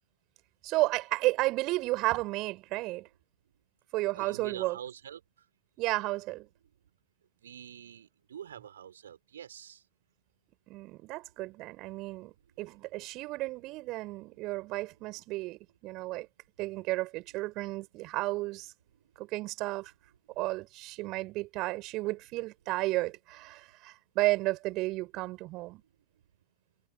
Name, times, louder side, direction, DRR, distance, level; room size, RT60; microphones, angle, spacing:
voice 1, 0.6-3.1 3.9-4.8 5.8-6.5 10.7-16.3 16.6-18.7 19.2-19.9 20.4-25.8, right 20 dB, 40° right, 6.6 m, -33 dB
voice 2, 4.1-5.2 7.4-9.8, right 9 dB, 65° right, 4.5 m, -45 dB
figure-of-eight pair, 90°, 0 cm